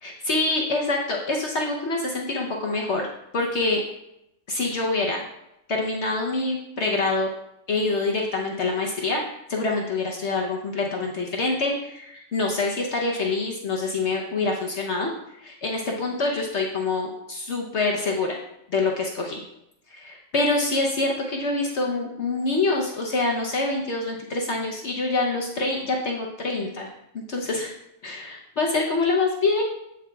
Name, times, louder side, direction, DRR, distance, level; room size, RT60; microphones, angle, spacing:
voice 1, 0.0-3.1 3.3-3.8 4.5-5.2 5.7-7.3 7.7-9.2 9.5-15.1 15.4-18.4 18.7-19.4 19.9-26.9 27.3-27.7 28.0-29.6, left 3 dB, 60° left, 0 dB, 1.1 m, -25 dB
14.5 x 5.0 x 2.3 m, 0.83 s
omnidirectional pair, 1.4 m